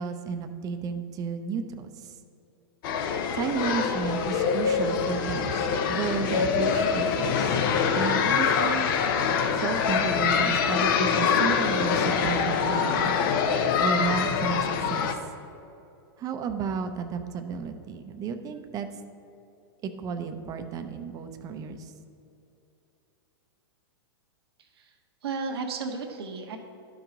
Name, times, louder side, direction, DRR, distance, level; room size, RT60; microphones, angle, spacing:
voice 1, 0.0-2.1 3.3-5.5 5.8-7.5 8.0-8.8 9.6-13.2 13.8-15.0 16.2-18.9 19.8-21.9, right 6 dB, 25° right, 7 dB, 0.6 m, -32 dB
sound 1, 2.8-15.1, left 6 dB, 55° left, 0.7 m, -25 dB
voice 2, 24.6-24.9 25.2-26.6, right 4 dB, 80° right, 2 dB, 1.0 m, -34 dB
12.0 x 4.7 x 3.8 m, 2.7 s
hypercardioid pair, 130°, 13 cm